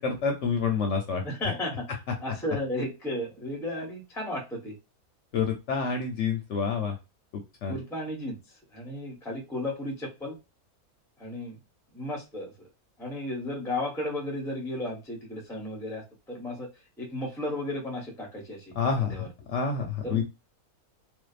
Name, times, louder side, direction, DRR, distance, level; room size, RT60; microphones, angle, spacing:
voice 1, 0.0-1.2 5.3-7.0 7.3-7.8 18.8-20.2, left 5 dB, 65° left, 3 dB, 0.8 m, -28 dB
voice 2, 1.2-1.9 2.2-4.8 7.6-10.4 11.2-11.6 11.9-12.7 13.0-16.7 17.0-19.3 20.0-20.2, left 1 dB, 5° left, 0 dB, 0.5 m, -34 dB
2.6 x 2.2 x 2.3 m, 0.27 s
omnidirectional pair, 1.6 m